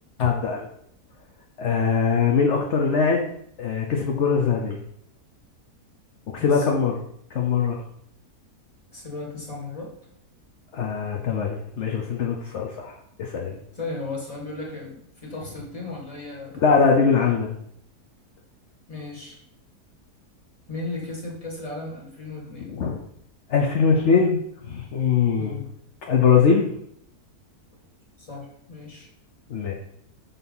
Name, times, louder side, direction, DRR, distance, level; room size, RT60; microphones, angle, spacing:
voice 1, 0.2-0.7 1.6-3.2 3.6-4.8 6.3-7.0 7.3-7.8 10.7-12.9 13.2-13.6 16.6-17.5 22.6-23.0 23.5-24.4 24.7-25.6 26.1-26.7 29.5-29.7, left 5 dB, 55° left, 1 dB, 1.0 m, -21 dB
voice 2, 8.9-9.9 13.7-16.6 18.9-19.4 20.7-22.7 25.4-25.7 28.2-29.1, left 3 dB, 25° left, -2 dB, 1.9 m, -35 dB
6.3 x 3.9 x 5.5 m, 0.70 s
omnidirectional pair, 1.6 m